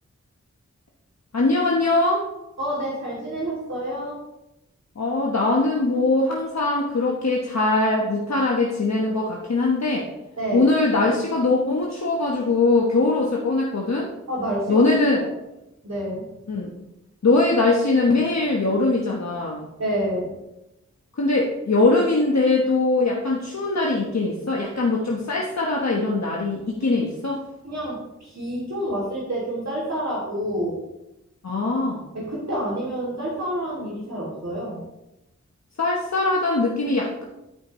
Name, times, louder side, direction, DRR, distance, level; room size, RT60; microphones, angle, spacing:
voice 1, 1.3-2.3 5.0-10.1 10.5-14.1 14.7-15.2 16.5-16.7 17.2-19.7 21.2-27.4 31.4-32.1 35.8-37.2, left 2 dB, 65° left, -2 dB, 1.1 m, -21 dB
voice 2, 2.6-4.2 10.4-10.7 14.3-14.9 15.1-15.3 15.8-16.3 19.8-20.3 27.6-30.8 32.1-34.8, right 1 dB, 65° right, -7 dB, 2.6 m, -28 dB
13.0 x 5.1 x 3.1 m, 0.93 s
wide cardioid pair, 55°, 29 cm